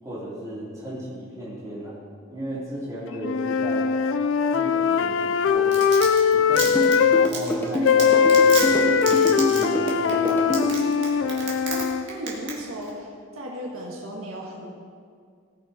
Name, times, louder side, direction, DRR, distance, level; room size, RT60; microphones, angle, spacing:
voice 1, 0.0-2.0 2.3-3.9 4.5-5.7 6.3-10.5 11.2-11.5, equal, 15° right, -9 dB, 3.4 m, -35 dB
sound 1, 3.2-7.3 7.8-12.1, left 6 dB, 70° left, 0.4 m, -20 dB
Domestic sounds home sounds, 5.5-11.8 12.1-12.5 12.8-12.9, right 5 dB, 55° right, 2.3 m, -30 dB
sound 2, 6.7-10.7, equal, 10° left, 1.0 m, -26 dB
voice 2, 11.5-13.1 13.3-14.6, equal, 85° right, -2 dB, 1.7 m, -35 dB
18.0 x 6.3 x 4.3 m, 2.1 s
head